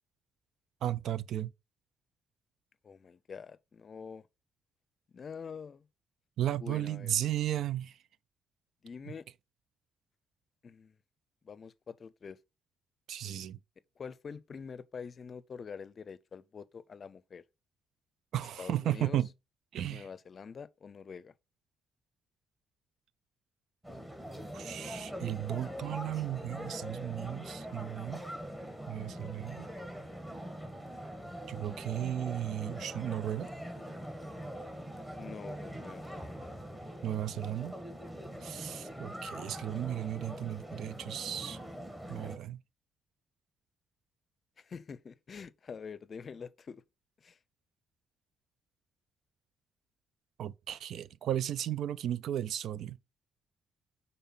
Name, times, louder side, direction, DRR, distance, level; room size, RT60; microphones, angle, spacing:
voice 1, 0.8-1.5 6.4-8.0 13.1-13.6 18.3-19.3 19.7-20.1 24.5-28.2 28.9-29.7 31.5-33.5 37.0-37.7 38.4-41.6 42.1-42.6 50.4-53.0, right 11 dB, 70° right, 0.3 m, -35 dB
voice 2, 2.8-4.3 5.1-5.9 6.6-7.1 8.8-9.3 10.6-10.9 11.4-12.4 14.0-17.4 18.6-19.2 19.9-21.3 35.1-36.5 44.6-46.8 47.2-47.4, left 6 dB, 45° left, 0.5 m, -46 dB
sound 1, 23.8-42.4, equal, 15° right, 1.9 m, -43 dB
5.7 x 3.9 x 5.7 m
cardioid pair, 90°, 0 cm